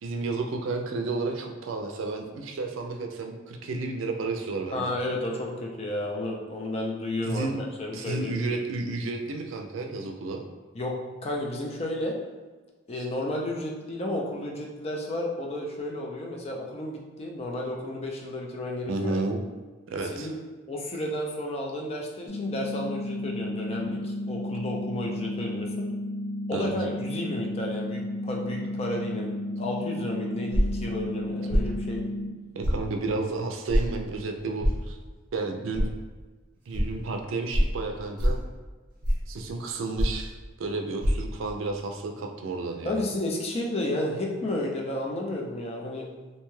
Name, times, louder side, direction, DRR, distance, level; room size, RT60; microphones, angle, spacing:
voice 1, 0.0-4.9 7.3-7.6 7.9-10.4 18.9-19.4 19.9-20.3 26.5-26.7 32.6-35.0 35.3-35.9 36.7-38.4 39.3-43.0, right 3 dB, 85° right, 4 dB, 0.4 m, -32 dB
voice 2, 4.7-8.3 10.7-12.2 12.9-19.2 20.0-20.4 20.7-25.9 26.5-32.1 42.8-46.2, left 1 dB, 30° left, -1 dB, 0.4 m, -32 dB
sound 1, 22.3-32.3, left 1 dB, 75° left, 0.9 m, -33 dB
sound 2, 30.5-30.8 31.5-31.7 32.6-32.8 33.7-33.9 34.6-34.8 35.7-35.9 36.7-36.9 37.5-37.7 38.2-38.4 39.0-39.3 40.0-40.3 41.0-41.1, equal, 40° right, 0.7 m, -23 dB
2.7 x 2.2 x 3.0 m, 1.3 s
head